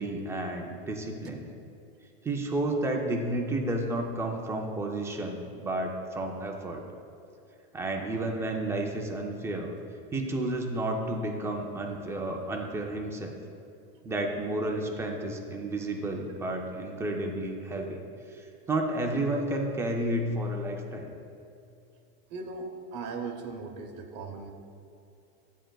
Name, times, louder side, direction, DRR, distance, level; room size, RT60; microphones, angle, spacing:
voice 1, 0.0-1.5 2.2-6.8 7.7-9.7 10.1-13.4 14.0-17.9 18.3-21.2, right 1 dB, 10° right, 1 dB, 0.4 m, -31 dB
voice 2, 22.3-24.5, right 4 dB, 35° right, 4 dB, 0.8 m, -38 dB
12.5 x 8.8 x 2.2 m, 2.6 s
supercardioid pair, 155°, 31 cm